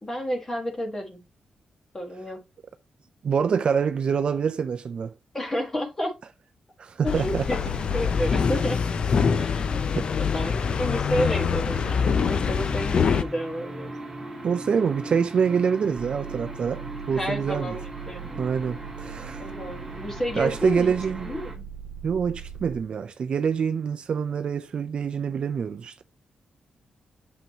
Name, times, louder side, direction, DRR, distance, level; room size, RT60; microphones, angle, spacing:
voice 1, 0.0-1.2 1.9-2.4 5.3-6.1 7.0-8.8 9.4-13.9 17.1-18.4 19.4-20.9 21.2-21.7, equal, 15° left, 1.6 m, -31 dB
voice 2, 3.2-5.1 6.8-7.5 9.9-10.1 14.4-17.8 18.4-19.5 20.4-21.3 22.0-26.0, right 6 dB, 45° right, 0.5 m, -26 dB
sound 1, 7.1-13.2, left 6 dB, 45° left, 0.5 m, -24 dB
sound 2, 11.7-21.5, right 1 dB, 5° right, 2.8 m, -39 dB
sound 3, 16.0-22.8, right 8 dB, 80° right, 1.0 m, -40 dB
7.5 x 5.6 x 2.9 m
wide cardioid pair, 180°, 2 cm